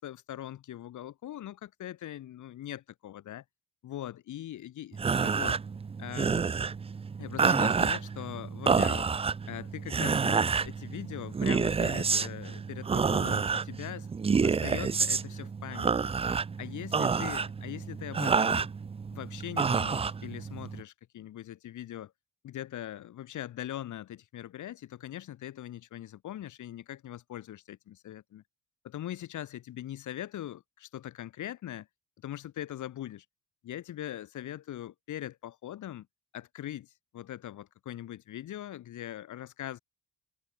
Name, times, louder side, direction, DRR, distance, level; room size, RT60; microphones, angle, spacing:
voice 1, 0.0-3.4 3.8-5.6 6.0-6.5 7.2-9.1 9.5-14.1 14.4-16.1 16.6-18.7 19.1-22.1 22.4-28.4 28.8-31.9 32.2-33.2 33.6-36.1 36.3-39.8, left 12 dB, 75° left, 5.7 m, -41 dB
sound 1, 4.9-20.8, right 5 dB, 20° right, 0.4 m, -29 dB
cardioid pair, 90°, 30 cm